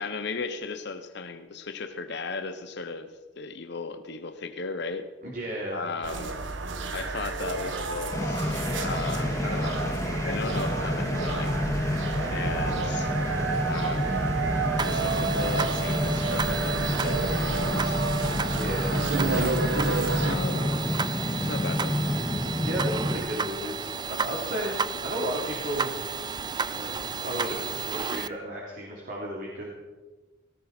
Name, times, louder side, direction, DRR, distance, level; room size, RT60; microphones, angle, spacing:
voice 1, 0.0-5.1 5.7-6.4 6.9-9.8 10.2-11.5 12.3-13.1 13.7-14.2 14.9-18.0 20.2-20.7 21.4-22.0, left 4 dB, 60° left, 8 dB, 0.9 m, -36 dB
voice 2, 5.2-5.8 12.3-12.6 18.5-19.6 20.5-20.7 22.6-24.8 25.0-25.9 26.7-26.9 27.2-29.7, equal, 50° right, -3 dB, 3.3 m, -34 dB
sound 1, 6.0-20.4, right 3 dB, 80° right, 1.3 m, -30 dB
sound 2, 8.1-23.2, left 1 dB, 15° left, 2.1 m, -29 dB
sound 3, 14.8-28.3, right 5 dB, 25° right, 0.4 m, -33 dB
18.5 x 17.5 x 4.4 m, 1.2 s
head